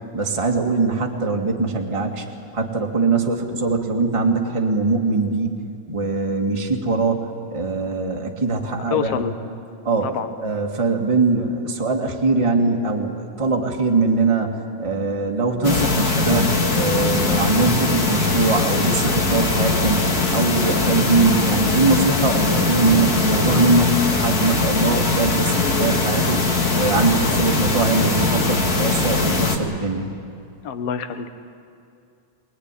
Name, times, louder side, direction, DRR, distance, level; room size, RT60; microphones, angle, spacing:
voice 1, 0.1-2.2 2.5-5.6 5.9-9.3 9.8-10.2 10.4-30.1, right 3 dB, 15° right, 0 dB, 1.4 m, -22 dB
voice 2, 8.9-9.4 10.0-10.3 30.6-31.3, left 8 dB, 60° left, 9 dB, 1.8 m, -26 dB
sound 1, 15.6-29.6, left 3 dB, 35° left, 1.7 m, -21 dB
23.5 x 20.0 x 10.0 m, 2.5 s
omnidirectional pair, 3.8 m